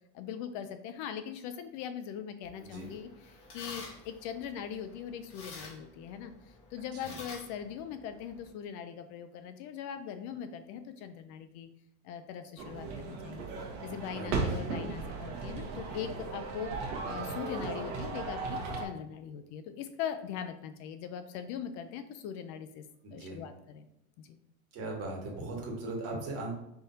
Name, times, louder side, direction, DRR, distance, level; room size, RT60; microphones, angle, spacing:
voice 1, 0.1-11.7 12.0-13.5 13.8-22.8 23.1-23.9 24.2-24.4, left 8 dB, 55° left, 9 dB, 0.5 m, -41 dB
sound 1, 2.4-8.5, left 3 dB, 40° left, 1.5 m, -50 dB
voice 2, 2.6-2.9 7.0-7.2 14.1-14.9 23.0-23.4 24.7-26.5, right 2 dB, 45° right, -1 dB, 1.6 m, -39 dB
sound 2, 12.6-18.8, right 4 dB, 65° right, 1.2 m, -36 dB
5.3 x 3.4 x 2.7 m, 0.83 s
supercardioid pair, 130°, 36 cm